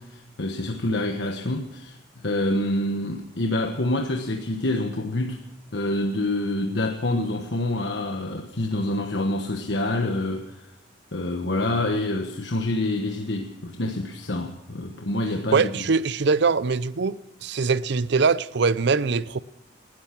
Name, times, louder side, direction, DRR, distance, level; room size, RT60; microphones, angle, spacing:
voice 1, 0.0-5.4 5.7-10.6 11.1-15.9, left 1 dB, 65° left, 1.3 m, -27 dB
voice 2, 15.5-17.2 17.4-19.4, right 4 dB, 65° right, 0.6 m, -22 dB
19.0 x 12.5 x 6.0 m
head